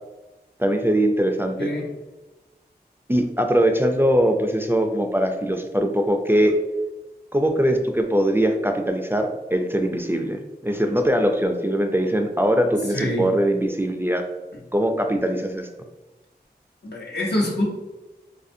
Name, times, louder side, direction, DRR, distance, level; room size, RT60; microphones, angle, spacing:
voice 1, 0.6-1.7 3.1-6.6 7.3-14.2 14.7-15.7, equal, 15° right, 4 dB, 0.3 m, -21 dB
voice 2, 1.6-1.9 12.9-13.3 16.8-17.6, left 1 dB, 80° left, -3 dB, 0.9 m, -25 dB
4.2 x 2.5 x 2.6 m, 1.1 s
wide cardioid pair, 55°, 17 cm